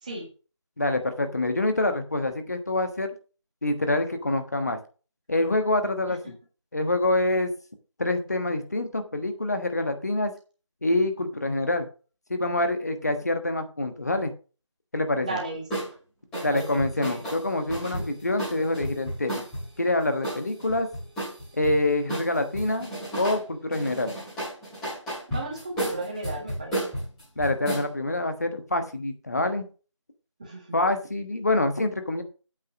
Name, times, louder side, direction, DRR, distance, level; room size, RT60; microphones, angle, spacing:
voice 1, 0.8-3.1 3.6-4.8 5.3-6.3 6.7-7.5 8.0-10.3 10.8-11.9 12.3-14.3 14.9-15.3 16.4-19.4 19.8-20.9 21.5-22.9 23.2-24.1 27.4-29.7 30.7-32.2, left 2 dB, 35° left, 7 dB, 1.3 m, -26 dB
voice 2, 15.2-15.8 16.3-17.3 17.9-18.0 25.3-26.9 30.4-30.8, right 2 dB, 15° right, 0 dB, 1.8 m, -35 dB
sound 1, 15.7-15.9 16.3-19.7 20.2-21.8 22.1-23.4 23.7-27.9, right 1 dB, 5° left, 2.7 m, -32 dB
8.7 x 5.4 x 6.2 m, 0.35 s
figure-of-eight pair, 170°, 16 cm